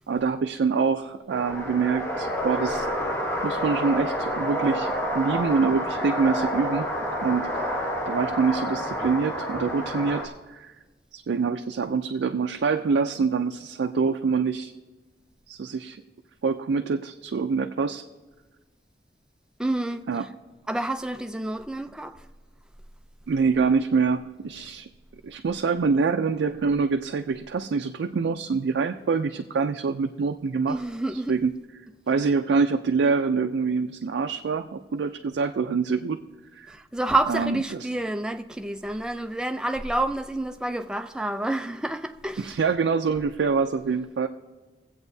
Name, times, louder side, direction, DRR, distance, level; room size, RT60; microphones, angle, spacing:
voice 1, 0.1-2.9 3.4-6.9 7.2-10.7 11.1-14.7 15.5-16.0 16.4-18.1 20.1-20.3 23.3-24.9 25.2-30.8 31.1-31.5 32.1-36.2 36.5-36.8 37.3-37.9 42.4-44.3, right 5 dB, 80° right, 0.4 m, -25 dB
sound 1, 1.3-10.3, equal, 15° left, 1.1 m, -29 dB
voice 2, 19.6-20.0 20.7-22.2 30.7-31.3 36.7-42.6, right 2 dB, 5° right, 0.3 m, -29 dB
23.5 x 8.0 x 2.7 m
head